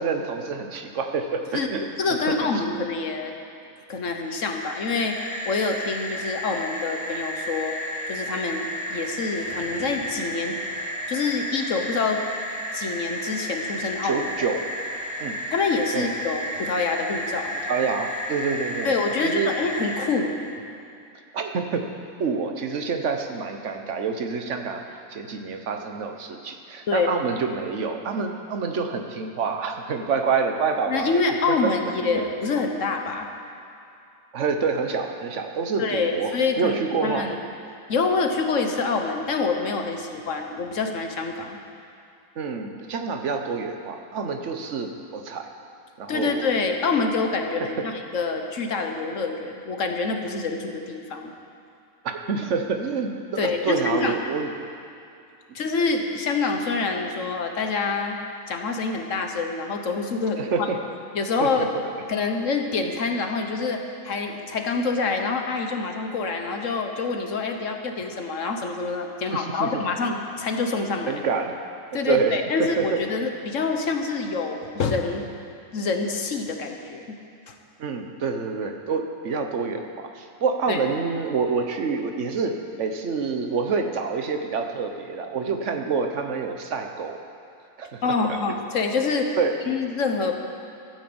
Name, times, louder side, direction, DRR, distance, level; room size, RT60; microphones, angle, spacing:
voice 1, 0.0-1.8 2.4-2.5 14.0-14.6 15.2-15.4 15.9-16.1 17.6-19.0 19.2-19.5 21.3-21.9 22.2-31.2 31.5-31.7 32.0-32.2 34.3-37.3 42.4-45.5 46.0-46.5 52.0-54.5 60.4-60.8 61.4-61.7 69.3-69.7 70.0-70.1 71.1-71.5 72.1-73.0 77.8-87.2 87.8-88.4 89.4-89.5, right 5 dB, 55° right, 5 dB, 1.3 m, -27 dB
voice 2, 1.5-3.3 3.9-7.8 8.1-10.6 10.8-12.2 12.7-14.5 15.5-17.6 18.8-20.4 26.9-27.1 30.9-33.3 35.8-36.7 37.0-37.4 37.9-41.6 46.1-51.3 53.4-54.2 55.5-58.2 58.5-60.4 61.1-61.7 62.1-71.1 71.9-75.2 75.7-77.2 77.5-77.6 80.7-80.8 88.0-89.4 89.7-90.4, left 4 dB, 60° left, 4 dB, 1.4 m, -26 dB
sound 1, 4.2-20.1, equal, 5° right, 3.3 m, -32 dB
13.5 x 9.8 x 7.9 m, 2.5 s
omnidirectional pair, 1.5 m